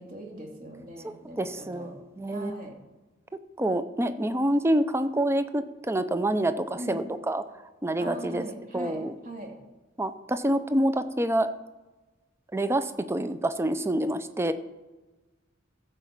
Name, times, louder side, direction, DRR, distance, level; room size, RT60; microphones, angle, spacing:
voice 1, 0.0-1.9 2.3-2.8 6.7-7.0 8.0-9.5, right 1 dB, 45° right, 1 dB, 2.4 m, -40 dB
voice 2, 1.4-2.6 3.6-7.4 7.8-8.5 8.7-9.1 10.0-11.5 12.5-14.5, right 1 dB, 15° right, 11 dB, 0.5 m, -27 dB
14.5 x 5.0 x 7.1 m, 1.2 s
head